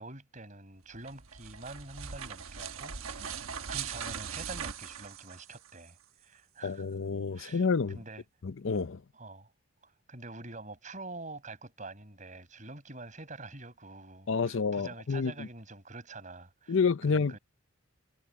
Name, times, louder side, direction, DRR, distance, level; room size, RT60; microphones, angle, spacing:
voice 1, 0.0-6.9 7.3-8.2 9.1-9.5 9.8-16.8 17.1-17.4, right 2 dB, 35° right, 6.1 m, -46 dB
sound 1, 0.9-5.9, right 7 dB, 85° right, 1.2 m, -40 dB
voice 2, 6.6-8.0 8.4-9.0 14.3-15.3 16.7-17.4, left 5 dB, 65° left, 0.6 m, -29 dB
head